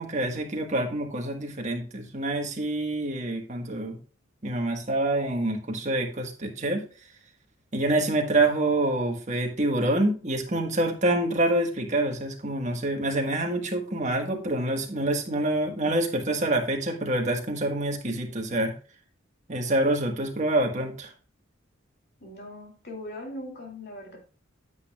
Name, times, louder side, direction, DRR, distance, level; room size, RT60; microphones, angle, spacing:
voice 1, 0.0-4.0 4.4-6.8 7.7-18.7 19.5-21.1, right 1 dB, 35° right, 2 dB, 1.5 m, -26 dB
voice 2, 22.2-24.2, left 1 dB, 55° left, 0 dB, 2.7 m, -40 dB
9.5 x 8.3 x 2.3 m, 0.36 s
head